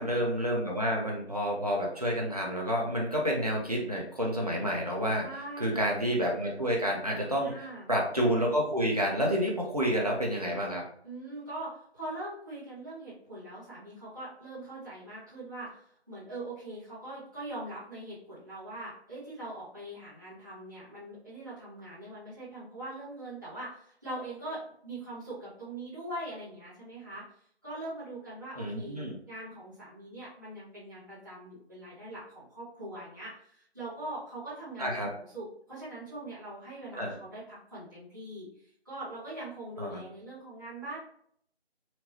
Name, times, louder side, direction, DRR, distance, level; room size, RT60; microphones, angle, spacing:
voice 1, 0.0-5.3 5.6-7.5 7.9-10.8 28.6-29.2 34.8-35.1 36.9-37.2 39.8-40.0, equal, 35° right, -1 dB, 0.8 m, -29 dB
voice 2, 5.2-5.8 7.4-7.8 11.0-27.2 27.6-41.0, right 1 dB, 15° right, -14 dB, 1.2 m, -42 dB
4.5 x 2.7 x 2.8 m, 0.63 s
figure-of-eight pair, 170°, 33 cm